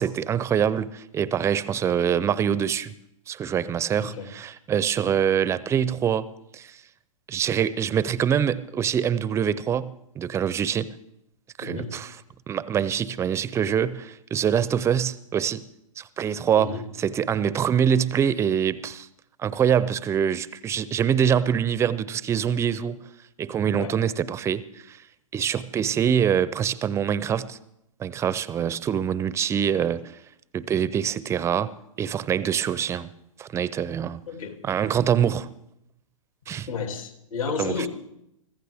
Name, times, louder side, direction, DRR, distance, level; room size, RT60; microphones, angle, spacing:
voice 1, 0.0-2.9 3.3-6.8 7.3-10.9 11.6-12.2 12.5-15.6 16.0-19.1 19.4-23.0 23.4-25.0 25.3-27.6 28.0-30.2 30.5-33.1 33.4-34.2 34.6-35.5 36.5-36.7 37.6-37.9, right 8 dB, 15° right, 0.5 m, -25 dB
voice 2, 11.6-11.9 16.6-16.9 23.8-24.0 34.3-34.6 36.7-37.9, left 5 dB, 70° left, 2.7 m, -32 dB
24.5 x 14.5 x 3.5 m
hypercardioid pair, 115°, 18 cm